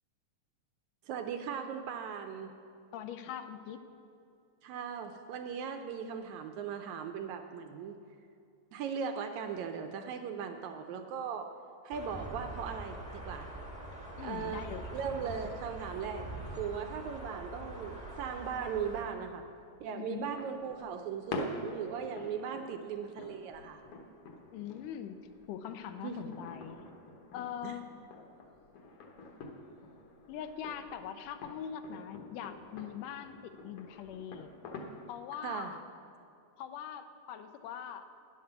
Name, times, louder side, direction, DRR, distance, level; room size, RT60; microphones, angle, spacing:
voice 1, 1.1-2.5 4.6-8.0 8.7-11.5 11.8-13.5 14.2-14.6 14.9-16.3 16.6-19.4 19.8-23.8 26.0-26.4 27.6-27.8 35.4-35.7, right 7 dB, 80° right, 6 dB, 1.8 m, -38 dB
voice 2, 2.9-3.8 14.2-14.9 19.9-20.3 24.5-26.9 27.3-27.9 30.3-34.5 35.1-35.8 36.6-38.1, left 9 dB, 90° left, 9 dB, 2.2 m, -42 dB
sound 1, 11.9-19.0, right 1 dB, 5° right, 0.8 m, -44 dB
sound 2, 20.2-35.2, left 3 dB, 60° left, 1.6 m, -47 dB
10.5 x 7.8 x 6.7 m, 2.6 s
omnidirectional pair, 3.6 m